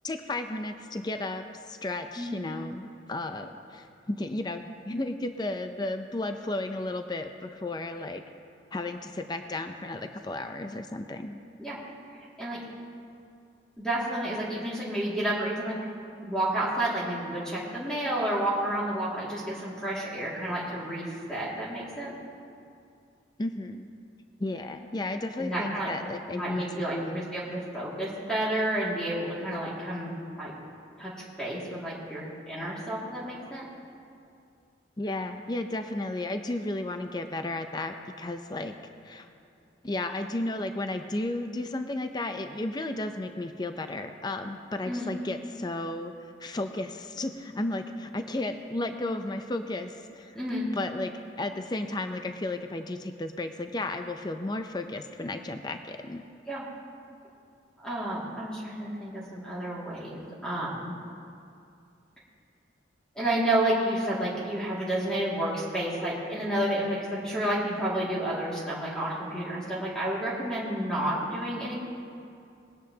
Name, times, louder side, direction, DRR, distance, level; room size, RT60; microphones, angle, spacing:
voice 1, 0.0-8.2 8.7-11.4 23.4-23.9 24.4-26.6 26.9-27.2 35.0-38.7 39.0-39.3 39.8-46.1 46.4-50.4 50.8-51.1 51.4-56.2, left 2 dB, 25° left, 7 dB, 0.5 m, -33 dB
voice 2, 13.8-15.8 16.2-22.2 25.4-25.9 26.3-30.5 31.0-31.1 31.4-33.7 44.9-45.1 50.3-50.7 56.5-56.6 57.8-60.9 63.2-71.7, right 1 dB, 5° left, -7 dB, 2.2 m, -30 dB
20.5 x 10.5 x 2.8 m, 2.5 s
head